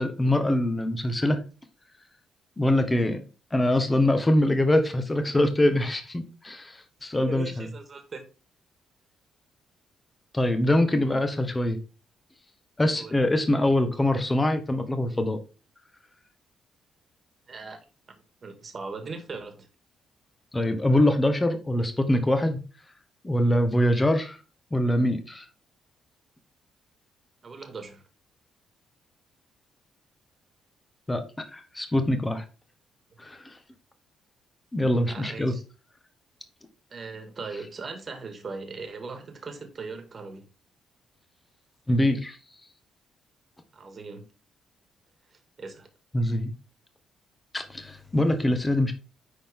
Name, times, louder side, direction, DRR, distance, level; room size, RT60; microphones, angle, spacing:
voice 1, 0.0-1.4 2.6-3.2 3.5-7.7 10.3-11.8 12.8-15.4 20.5-22.6 23.2-24.4 24.7-25.5 31.1-31.2 31.5-32.4 33.2-33.5 34.7-35.5 41.9-42.4 46.1-46.5 47.5-48.9, left 1 dB, 15° left, 1.5 m, -24 dB
voice 2, 7.2-8.3 12.9-13.1 17.5-17.8 18.4-19.7 27.4-28.0 35.0-35.6 36.9-40.5 43.7-44.3 45.3-45.9, right 4 dB, 40° right, 2.2 m, -39 dB
10.0 x 4.3 x 3.7 m
cardioid pair, 90°, 0 cm